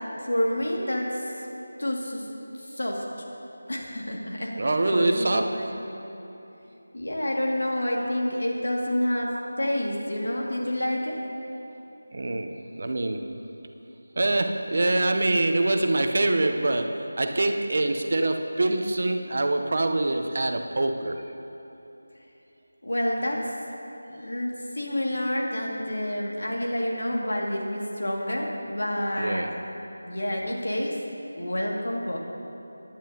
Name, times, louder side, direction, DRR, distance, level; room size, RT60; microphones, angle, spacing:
voice 1, 0.2-1.2 1.8-2.3 2.6-3.0 3.7-5.8 6.9-11.2 22.8-23.4 24.0-29.5 30.0-30.9 31.3-32.2, left 1 dB, 85° left, -1 dB, 2.1 m, -28 dB
voice 2, 4.5-5.8 12.1-13.5 14.2-21.2 29.2-29.6, right 2 dB, 50° right, 5 dB, 0.7 m, -25 dB
17.5 x 10.5 x 2.8 m, 2.9 s
figure-of-eight pair, 175°, 0 cm